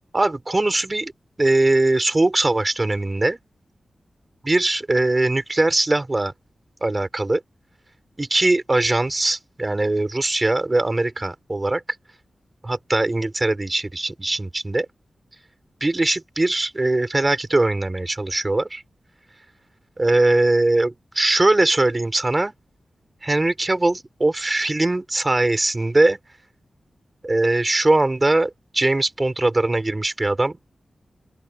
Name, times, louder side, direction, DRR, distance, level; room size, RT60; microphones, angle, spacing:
voice 1, 0.1-1.1 1.4-3.4 4.4-6.3 6.8-7.4 8.2-11.8 12.6-14.9 15.8-18.8 20.0-22.5 23.2-26.2 27.2-30.7, right 2 dB, 20° right, 3.4 m, -21 dB
open air
wide cardioid pair, 165°, 0 cm